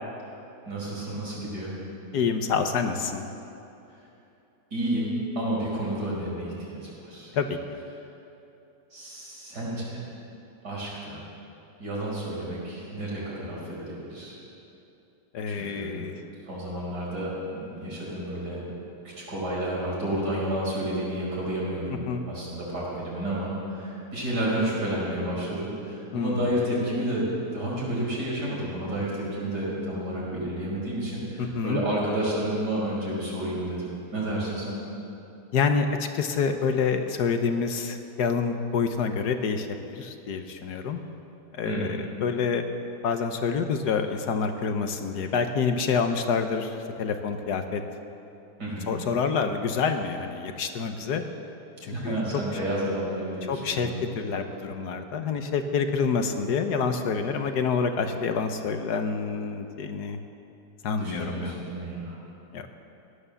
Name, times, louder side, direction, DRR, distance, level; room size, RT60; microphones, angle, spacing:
voice 1, 0.7-1.7 4.7-5.1 5.4-7.3 8.9-10.0 10.6-11.2 11.8-14.3 15.5-15.9 16.5-18.6 19.2-22.0 22.3-33.8 34.1-34.8 41.6-41.9 48.6-48.9 51.9-54.0 61.0-62.2, right 1 dB, 70° right, -6 dB, 5.3 m, -30 dB
voice 2, 2.1-3.3 7.3-7.8 15.3-16.2 21.9-22.2 26.1-26.5 31.4-31.8 35.5-39.7 39.9-41.0 41.5-42.6 43.0-47.8 48.9-51.2 51.8-52.2 53.5-53.9 54.1-60.2 60.8-61.6 62.5-62.7, left 5 dB, 75° left, 7 dB, 1.5 m, -27 dB
16.5 x 11.5 x 6.9 m, 2.8 s
omnidirectional pair, 1.8 m